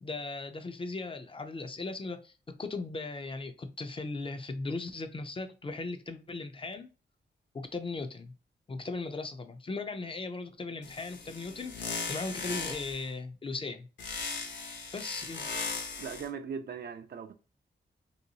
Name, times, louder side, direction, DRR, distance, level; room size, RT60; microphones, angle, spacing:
voice 1, 0.0-6.9 7.5-8.3 8.7-13.9 14.9-15.5, left 3 dB, 30° left, 0.4 m, -38 dB
sound 1, 10.8-13.1 14.0-16.3, left 4 dB, 75° left, 0.8 m, -38 dB
voice 2, 16.0-17.3, right 6 dB, 60° right, 0.4 m, -39 dB
3.0 x 2.8 x 2.7 m
wide cardioid pair, 130°, 19 cm